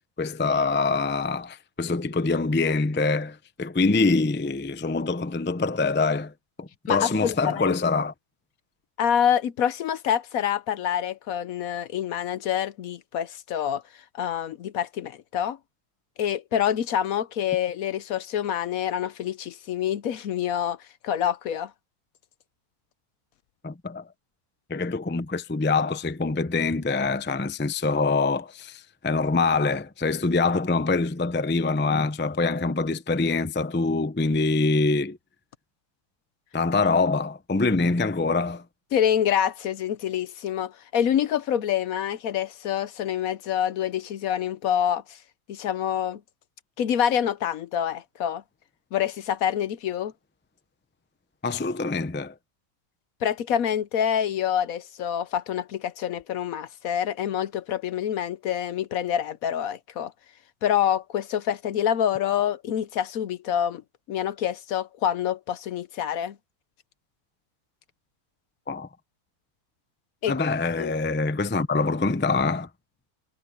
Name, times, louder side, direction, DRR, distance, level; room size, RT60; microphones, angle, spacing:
voice 1, 0.2-6.3 6.6-8.1 23.6-24.1 24.7-35.2 36.5-38.6 51.4-52.3 68.7-68.9 70.3-72.7, left 3 dB, 15° left, 0.4 m, -25 dB
voice 2, 6.9-7.8 9.0-15.6 16.2-20.8 21.0-21.7 38.9-45.2 45.5-46.2 46.8-48.4 48.9-50.1 53.2-60.1 60.6-63.8 64.1-66.4 70.2-70.3 70.8-70.9, left 9 dB, 65° left, 1.1 m, -26 dB
omnidirectional pair, 1.7 m